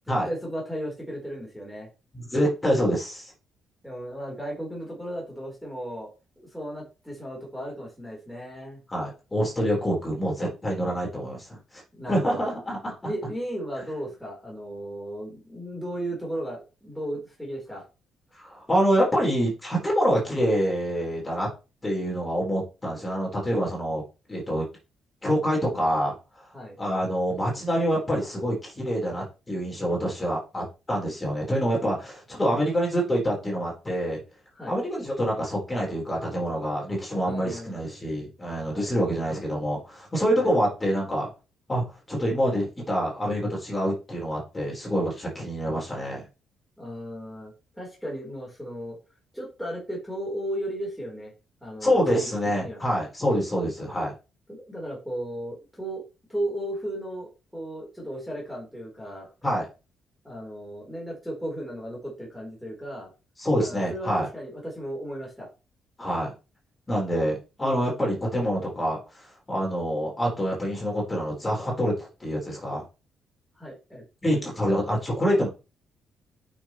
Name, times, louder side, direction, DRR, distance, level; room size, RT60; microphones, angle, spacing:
voice 1, 0.1-1.9 3.8-6.1 6.4-8.8 11.9-12.5 13.0-17.8 26.5-26.8 34.5-34.8 37.2-38.0 38.7-38.9 40.4-40.5 46.8-49.0 49.3-51.3 51.6-52.3 52.6-52.8 54.5-56.0 56.3-59.3 60.2-63.1 63.6-65.5 73.6-74.5, right 1 dB, ahead, -4 dB, 3.9 m, -35 dB
voice 2, 2.1-3.3 8.9-11.8 12.1-13.1 18.4-21.5 21.8-24.0 24.3-24.6 25.2-26.1 26.8-34.2 34.7-41.3 41.7-46.2 51.8-54.1 59.4-59.7 63.4-64.3 66.0-66.3 66.9-69.0 69.5-72.8 74.2-75.5, equal, 20° left, -2 dB, 4.1 m, -26 dB
8.4 x 6.5 x 3.1 m, 0.30 s
cardioid pair, 90°, 0 cm